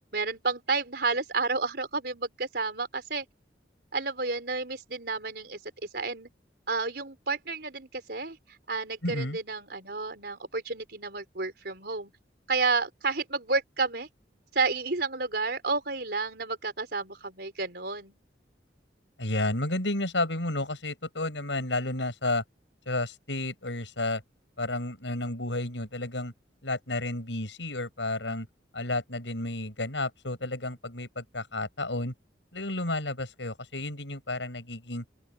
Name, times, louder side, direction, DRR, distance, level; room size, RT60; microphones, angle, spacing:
voice 1, 0.1-3.2 3.9-5.6 5.9-6.3 6.7-8.4 8.7-12.1 12.5-14.1 14.5-18.2, right 4 dB, 60° right, 4.8 m, -31 dB
voice 2, 9.0-9.4 19.2-22.4 22.8-24.2 24.6-26.3 26.6-28.5 28.7-32.1 32.5-35.0, left 2 dB, 85° left, 6.8 m, -31 dB
open air
head